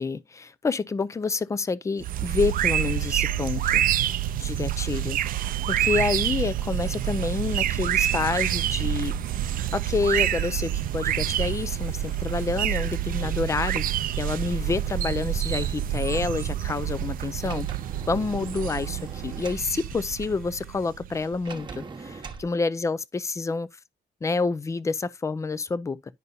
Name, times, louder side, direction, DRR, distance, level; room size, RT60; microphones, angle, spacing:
voice 1, 0.0-3.8 4.4-9.1 9.7-13.8 14.2-17.7 18.1-23.7 24.2-26.0, left 4 dB, 15° left, 0.4 m, -28 dB
sound 1, 2.0-21.4, right 11 dB, 55° right, 0.4 m, -27 dB
sound 2, 8.8-20.9, right 3 dB, ahead, 1.3 m, -54 dB
Sliding door, 17.4-19.7 21.4-22.5, right 4 dB, 25° right, 1.1 m, -41 dB
10.5 x 5.3 x 2.7 m
cardioid pair, 165°, 18 cm